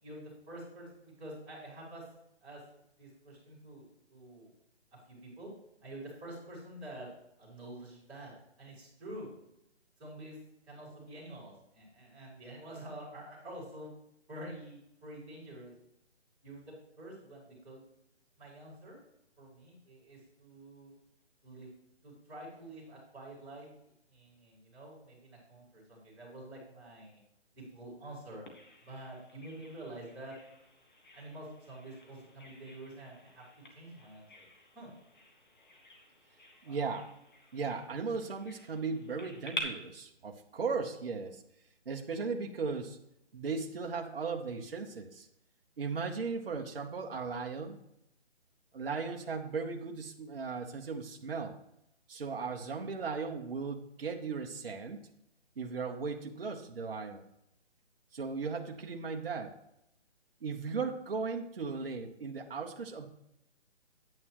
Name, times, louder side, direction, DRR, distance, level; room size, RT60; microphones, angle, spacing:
voice 1, 0.0-2.0 2.4-2.6 3.0-4.5 4.9-5.5 5.8-7.1 7.4-8.3 8.6-9.3 10.0-10.4 10.7-13.9 14.3-15.8 16.4-17.8 18.4-19.0 19.4-20.9 21.4-21.7 22.0-23.7 24.1-27.2 27.5-28.4 28.8-30.4 31.1-33.4 33.7-34.4 34.7-34.9 36.6-36.8, right 1 dB, 5° right, -15 dB, 2.9 m, -48 dB
Bird vocalization bird call bird song, 28.5-39.6, left 2 dB, 40° left, 1.4 m, -49 dB
voice 2, 36.6-37.1 37.5-41.4 41.9-43.0 43.3-45.3 45.8-47.8 48.7-51.5 52.1-55.0 55.6-57.2 58.1-59.5 60.4-63.1, right 4 dB, 50° right, 2 dB, 1.0 m, -37 dB
9.3 x 8.8 x 3.0 m, 0.80 s
hypercardioid pair, 175°, 36 cm